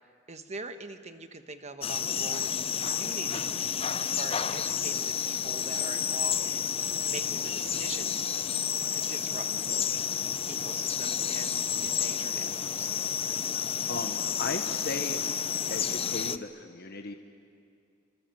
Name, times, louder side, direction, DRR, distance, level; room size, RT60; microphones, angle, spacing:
voice 1, 0.3-3.5 4.0-8.4 8.9-9.9 10.5-12.9, right 3 dB, 35° right, 8 dB, 1.3 m, -43 dB
sound 1, 1.8-16.4, left 8 dB, 30° left, 0.6 m, -30 dB
voice 2, 13.9-15.2 15.7-17.1, left 3 dB, 50° left, 5 dB, 1.1 m, -36 dB
26.5 x 25.5 x 7.7 m, 2.4 s
head